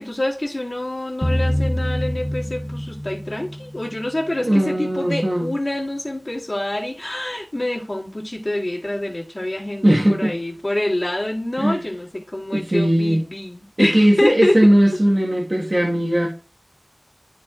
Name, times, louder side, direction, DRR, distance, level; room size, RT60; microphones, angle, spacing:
voice 1, 0.0-14.6, left 1 dB, 55° left, 2.1 m, -26 dB
sound 1, 1.2-4.3, equal, 10° left, 0.5 m, -25 dB
voice 2, 4.4-5.5 9.8-10.3 11.6-11.8 12.5-13.2 13.8-16.3, right 1 dB, 55° right, 1.5 m, -18 dB
12.0 x 4.3 x 2.4 m
wide cardioid pair, 40°, 0 cm